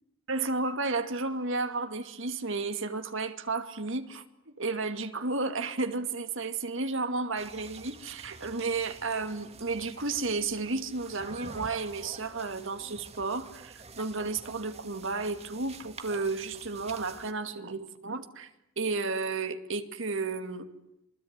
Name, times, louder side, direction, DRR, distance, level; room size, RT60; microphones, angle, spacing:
voice 1, 0.3-4.2 4.6-18.5 18.8-20.7, right 3 dB, 65° right, 2.5 m, -32 dB
sound 1, 7.4-17.3, right 4 dB, 30° right, 2.1 m, -48 dB
27.5 x 21.0 x 9.8 m
head